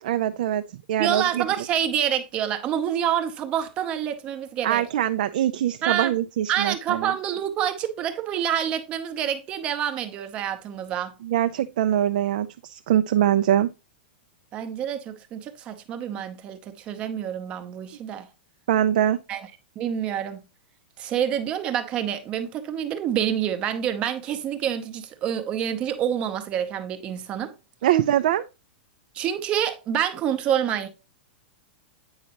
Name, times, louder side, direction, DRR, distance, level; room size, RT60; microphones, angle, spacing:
voice 1, 0.0-1.4 4.6-7.1 11.2-13.7 18.7-19.2 27.8-28.5, right 11 dB, 45° right, 0.4 m, -23 dB
voice 2, 1.0-4.9 5.8-6.1 6.5-11.1 14.5-18.3 19.3-19.5 19.8-20.4 21.0-27.5 29.1-30.9, right 9 dB, 20° right, 0.7 m, -27 dB
8.8 x 5.2 x 2.9 m
supercardioid pair, 180°, 6 cm